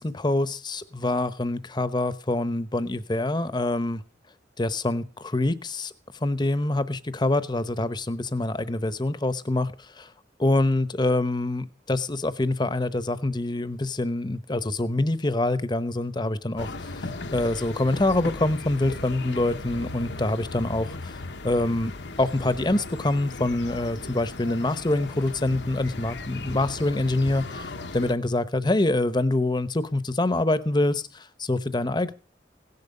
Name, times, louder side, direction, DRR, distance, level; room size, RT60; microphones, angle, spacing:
voice 1, 0.0-4.0 4.6-5.9 6.2-10.1 10.4-21.2 21.4-21.9 22.2-32.1, left 2 dB, 25° left, 0.9 m, -25 dB
sound 1, 16.6-28.1, left 2 dB, 80° left, 1.1 m, -37 dB
16.5 x 11.0 x 5.4 m
head